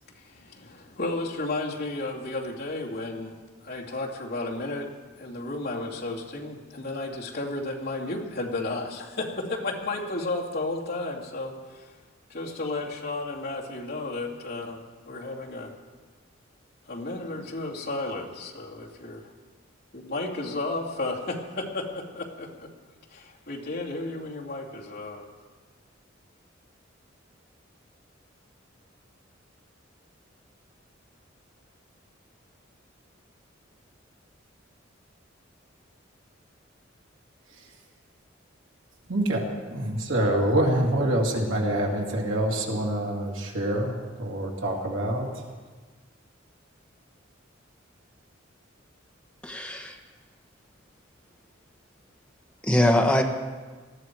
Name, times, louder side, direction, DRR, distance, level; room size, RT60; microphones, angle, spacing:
voice 1, 0.1-4.9 5.2-11.9 12.3-14.8 15.1-15.7 16.9-19.3 19.9-22.7 23.1-25.3, left 2 dB, 55° left, -3 dB, 2.5 m, -33 dB
voice 2, 39.1-45.3, right 1 dB, 75° right, -1 dB, 2.6 m, -26 dB
voice 3, 49.4-50.0 52.6-53.2, left 1 dB, 5° left, 2 dB, 1.1 m, -22 dB
19.5 x 14.0 x 4.7 m, 1.4 s
head